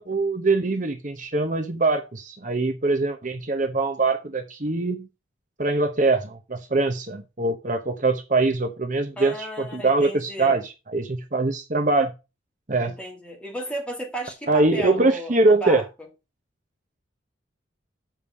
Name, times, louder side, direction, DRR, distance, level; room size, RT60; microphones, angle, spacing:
voice 1, 0.0-5.1 5.6-12.1 12.7-12.9 14.5-15.8, right 3 dB, 40° right, 0.9 m, -23 dB
voice 2, 9.2-10.6 12.8-16.1, right 1 dB, 5° left, 2.3 m, -34 dB
7.2 x 5.2 x 6.2 m
head